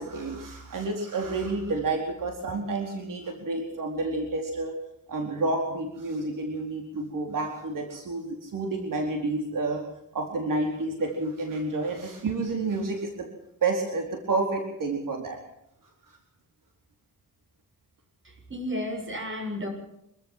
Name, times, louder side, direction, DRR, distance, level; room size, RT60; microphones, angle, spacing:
voice 1, 0.0-4.7 5.1-9.8 10.1-13.3 13.6-15.4, right 3 dB, 70° right, 2 dB, 4.5 m, -30 dB
voice 2, 18.2-19.7, left 1 dB, 35° right, 3 dB, 7.5 m, -33 dB
26.5 x 15.0 x 7.6 m, 0.82 s
wide cardioid pair, 115°, 33 cm